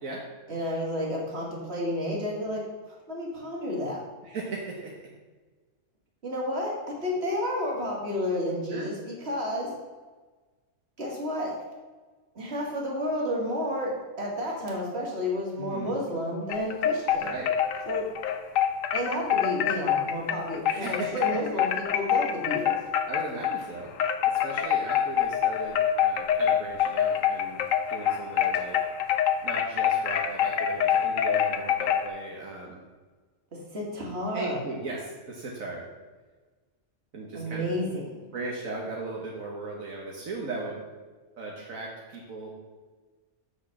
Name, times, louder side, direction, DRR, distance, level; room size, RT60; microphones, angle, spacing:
voice 1, 0.5-4.0 6.2-9.7 11.0-11.6 12.3-17.3 17.9-18.1 18.9-22.8 33.5-34.6 37.3-38.2, left 1 dB, 50° right, -3 dB, 2.4 m, -31 dB
voice 2, 4.2-5.0 8.7-8.9 15.6-15.9 17.2-17.5 20.7-21.4 23.1-23.9 24.3-27.6 27.9-28.8 29.4-32.8 34.3-35.8 37.1-37.7 38.3-40.8 41.4-42.5, right 3 dB, 75° right, -2 dB, 1.6 m, -37 dB
sound 1, 16.5-23.6 24.0-32.1, left 9 dB, 75° left, 1.1 m, -26 dB
6.2 x 6.0 x 7.0 m, 1.3 s
omnidirectional pair, 1.4 m